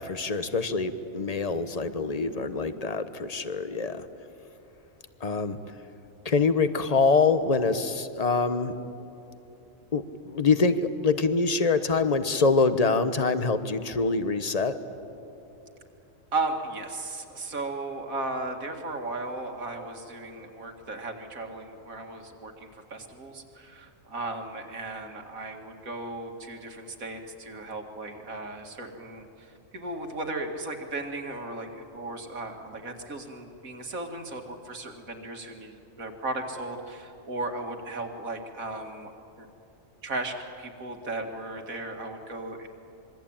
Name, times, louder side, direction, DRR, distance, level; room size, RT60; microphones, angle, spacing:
voice 1, 0.0-4.1 5.2-5.6 6.2-8.7 9.9-14.8, left 4 dB, 30° left, 11 dB, 1.1 m, -25 dB
voice 2, 16.3-39.1 39.4-39.5 40.0-42.7, right 2 dB, 85° right, 3 dB, 2.6 m, -36 dB
26.5 x 23.0 x 8.9 m, 2.9 s
omnidirectional pair, 1.4 m